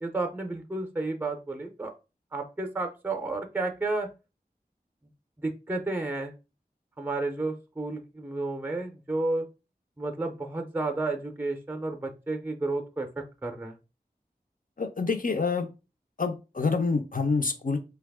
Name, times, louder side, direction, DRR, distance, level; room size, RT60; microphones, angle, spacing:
voice 1, 0.0-1.9 2.3-4.1 5.4-6.3 7.0-9.5 10.0-13.8, right 2 dB, 10° right, 5 dB, 0.5 m, -31 dB
voice 2, 14.8-15.7 16.2-17.8, left 4 dB, 55° left, 6 dB, 0.6 m, -27 dB
2.8 x 2.3 x 3.4 m, 0.29 s
wide cardioid pair, 40°, 16 cm